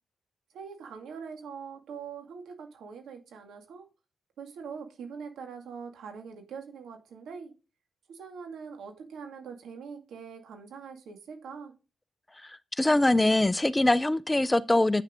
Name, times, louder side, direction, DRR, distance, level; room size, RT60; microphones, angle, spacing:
voice 1, 0.5-3.9 4.4-7.5 8.1-11.7, right 6 dB, 80° right, 2.2 m, -43 dB
voice 2, 12.8-15.0, left 1 dB, 15° left, 0.5 m, -23 dB
8.5 x 6.5 x 3.7 m
cardioid pair, 60°, 0 cm